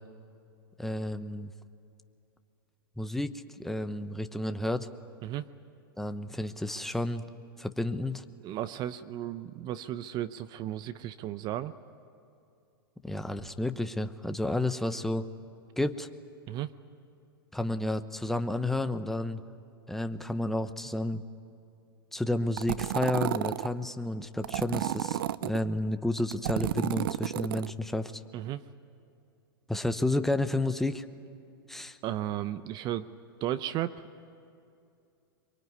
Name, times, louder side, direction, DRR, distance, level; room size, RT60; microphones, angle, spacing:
voice 1, 0.8-1.5 3.0-4.9 6.0-7.3 7.6-8.2 13.0-15.3 15.8-16.1 17.5-19.4 19.9-21.2 22.1-28.2 29.7-31.0 31.7-32.0, left 1 dB, ahead, 9 dB, 0.9 m, -31 dB
voice 2, 8.4-11.7 16.5-16.7 28.3-28.6 32.0-33.1 33.4-34.0, right 12 dB, 35° right, 14 dB, 0.7 m, -34 dB
sound 1, 22.6-23.7 24.4-25.6 26.2-27.7, right 13 dB, 65° right, 0.6 m, -31 dB
24.0 x 23.0 x 9.6 m, 2.5 s
hypercardioid pair, 115°, 12 cm